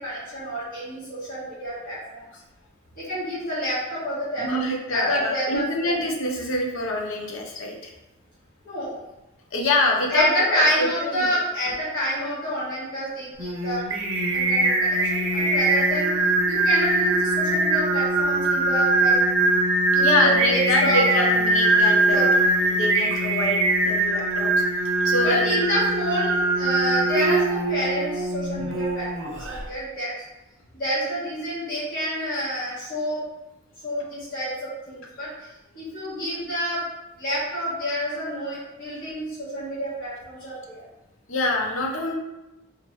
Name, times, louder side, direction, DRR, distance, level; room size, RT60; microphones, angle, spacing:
voice 1, 0.0-2.2 3.0-4.5 4.9-5.9 8.6-9.0 10.1-13.8 14.3-16.1 16.5-19.1 19.9-21.3 22.1-22.3 25.2-30.1 30.8-33.2 33.8-35.3 35.7-36.8 37.2-40.9, equal, 45° left, -10 dB, 1.4 m, -28 dB
voice 2, 4.4-7.9 9.5-11.3 20.0-22.4 22.7-24.5 25.0-25.6 41.3-42.1, left 2 dB, 80° left, 0 dB, 0.7 m, -25 dB
Singing, 13.4-29.6, right 2 dB, 70° right, 0.6 m, -22 dB
3.5 x 3.0 x 3.1 m, 0.97 s
head